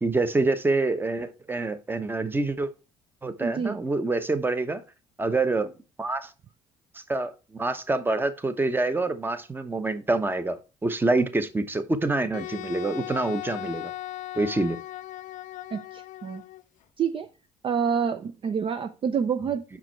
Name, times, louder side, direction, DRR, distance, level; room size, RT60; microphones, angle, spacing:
voice 1, 0.0-2.7 3.2-4.8 5.2-5.7 6.0-6.3 6.9-13.9 14.3-14.8, right 2 dB, 15° right, 0.9 m, -26 dB
voice 2, 3.4-3.8 15.7-16.4 17.0-17.3 17.6-19.8, right 6 dB, 40° right, 0.5 m, -28 dB
Wind instrument woodwind instrument, 12.3-16.6, left 15 dB, 65° left, 0.5 m, -38 dB
6.0 x 4.9 x 4.5 m
cardioid pair, 95°, 14 cm